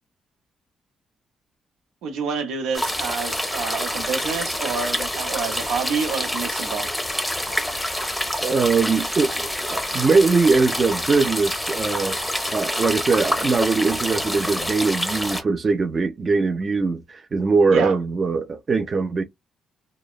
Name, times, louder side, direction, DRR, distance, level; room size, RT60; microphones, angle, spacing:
voice 1, 2.0-6.9 17.7-18.0, right 5 dB, 85° right, 0.7 m, -28 dB
sound 1, 2.7-15.4, left 1 dB, 5° left, 0.6 m, -27 dB
voice 2, 8.4-12.2 12.5-19.2, right 4 dB, 35° right, 0.4 m, -21 dB
2.9 x 2.0 x 2.3 m
cardioid pair, 90°, 0 cm